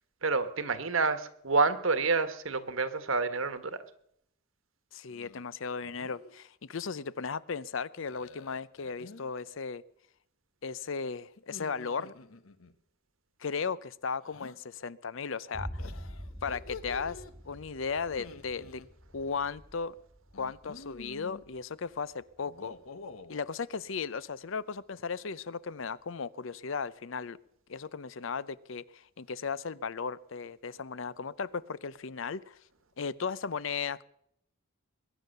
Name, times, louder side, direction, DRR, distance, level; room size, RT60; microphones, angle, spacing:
voice 1, 0.2-3.7, right 4 dB, 70° right, 11 dB, 1.4 m, -28 dB
voice 2, 4.9-9.8 10.6-12.1 13.4-15.8 16.4-17.2 17.5-18.8 19.1-19.9 20.3-22.7 23.3-27.4 27.7-32.6 33.0-34.0, left 5 dB, 65° left, 19 dB, 0.6 m, -36 dB
sound 1, 5.1-5.4 5.8-6.3 8.0-9.3 11.4-12.7 14.2-14.6 15.8-17.3 18.0-18.9 20.3-21.4 22.4-23.4, left 3 dB, 85° left, 1.1 m, -48 dB
Boom, 15.5-23.4, equal, 5° left, 1.6 m, -46 dB
22.0 x 9.9 x 6.7 m, 0.72 s
head